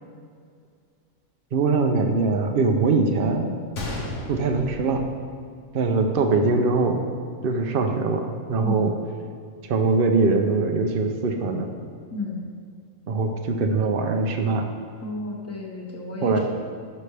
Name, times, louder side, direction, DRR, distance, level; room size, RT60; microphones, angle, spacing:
voice 1, 1.5-3.5 4.3-5.1 5.7-7.0 7.4-8.9 9.6-11.7 13.1-14.6 16.2-16.4, right 3 dB, 55° right, 4 dB, 0.7 m, -22 dB
Gunshot gunfire, 3.7-5.8 6.1-6.2 6.8-7.0, left 2 dB, 60° left, 1.5 m, -34 dB
voice 2, 15.0-16.4, left 3 dB, 10° left, -2 dB, 1.0 m, -32 dB
11.5 x 6.1 x 3.3 m, 2.2 s
omnidirectional pair, 1.5 m